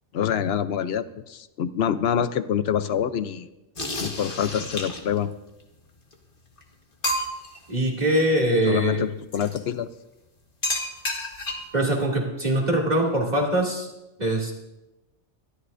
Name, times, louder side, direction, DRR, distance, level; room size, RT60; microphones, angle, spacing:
voice 1, 0.1-3.5 4.0-5.3 8.6-9.9, left 8 dB, 65° left, 12 dB, 0.9 m, -26 dB
sound 1, 3.8-5.2 6.1-6.2 6.6-6.7 7.0-7.6 9.3-9.6 10.6-11.8, left 1 dB, 50° left, 1.8 m, -30 dB
voice 2, 7.7-9.0 11.7-13.9 14.2-14.5, right 1 dB, 35° right, -1 dB, 2.8 m, -23 dB
24.0 x 13.0 x 2.6 m, 0.96 s
omnidirectional pair, 1.2 m